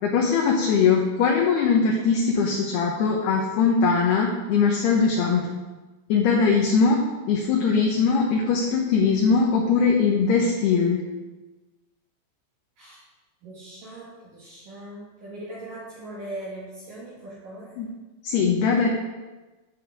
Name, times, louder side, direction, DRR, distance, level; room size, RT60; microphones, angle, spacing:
voice 1, 0.0-5.5 6.1-7.0 7.3-11.0 17.8-17.9 18.2-18.9, left 5 dB, 70° left, 0 dB, 2.6 m, -21 dB
voice 2, 13.4-17.8, right 1 dB, 55° right, -6 dB, 2.8 m, -40 dB
13.0 x 7.8 x 5.0 m, 1.2 s
omnidirectional pair, 5.7 m